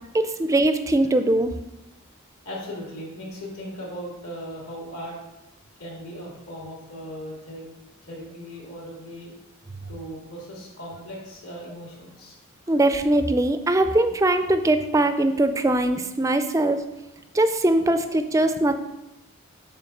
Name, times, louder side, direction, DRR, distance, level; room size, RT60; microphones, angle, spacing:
voice 1, 0.1-1.5 12.7-16.8 17.3-18.8, right 1 dB, 15° right, 9 dB, 0.3 m, -21 dB
voice 2, 2.4-5.2 5.8-7.6 8.0-9.4 9.8-12.4 12.7-12.8, equal, 80° left, -4 dB, 2.6 m, -38 dB
6.9 x 3.4 x 5.9 m, 0.96 s
head